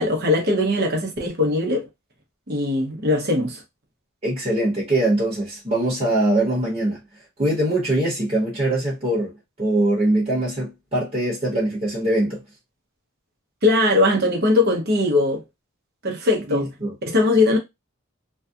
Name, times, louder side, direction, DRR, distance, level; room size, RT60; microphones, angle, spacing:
voice 1, 0.0-1.9 2.5-3.6 13.6-15.4 16.0-16.6 17.0-17.6, left 2 dB, 45° right, 0.8 m, -20 dB
voice 2, 4.2-7.0 7.4-12.4 16.5-16.9, right 1 dB, 30° right, 1.1 m, -22 dB
2.6 x 2.3 x 2.3 m
head